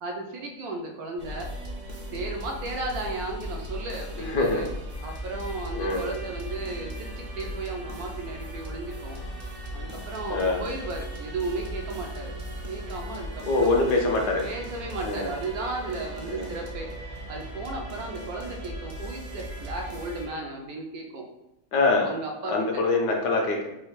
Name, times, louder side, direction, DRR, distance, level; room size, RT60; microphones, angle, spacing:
voice 1, 0.0-1.5 2.1-4.7 5.0-9.2 9.7-12.3 12.7-13.9 14.4-16.9 17.3-21.3 22.0-22.6, right 2 dB, 70° right, 1 dB, 1.1 m, -35 dB
sound 1, 1.2-20.3, equal, 45° right, 0.8 m, -37 dB
voice 2, 4.3-4.7 5.7-6.1 10.3-10.6 13.5-14.5 15.0-15.3 16.3-16.5 21.7-22.1 22.5-23.7, left 3 dB, 80° left, 0 dB, 1.5 m, -24 dB
4.3 x 2.4 x 4.7 m, 0.89 s
omnidirectional pair, 1.8 m